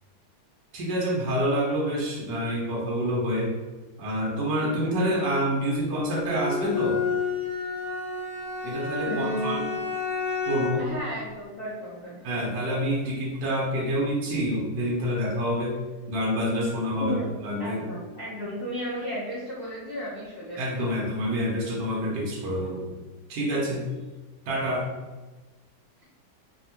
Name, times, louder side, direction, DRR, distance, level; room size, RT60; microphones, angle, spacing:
voice 1, 0.7-3.6 4.0-7.0 8.6-9.7 10.5-10.9 12.2-15.7 16.1-17.8 20.6-22.9 23.3-23.9 24.5-24.9, equal, 75° right, -4 dB, 1.3 m, -27 dB
Bowed string instrument, 6.1-11.0, left 4 dB, 40° left, 0.8 m, -30 dB
voice 2, 9.0-9.8 10.8-12.4 17.0-17.3 17.6-21.0, left 1 dB, 65° left, -10 dB, 0.5 m, -34 dB
3.4 x 2.1 x 2.8 m, 1.2 s
omnidirectional pair, 1.9 m